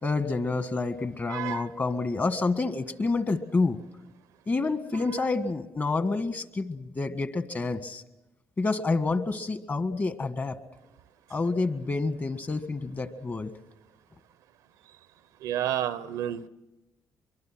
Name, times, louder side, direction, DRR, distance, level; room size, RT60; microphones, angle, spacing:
voice 1, 0.0-3.8 4.5-8.0 8.6-10.6 11.3-13.5, left 3 dB, 35° left, 10 dB, 1.6 m, -28 dB
voice 2, 1.3-1.6 15.4-16.5, right 11 dB, 85° right, 16 dB, 0.8 m, -30 dB
23.5 x 23.5 x 6.1 m, 0.97 s
supercardioid pair, 70°, 6 cm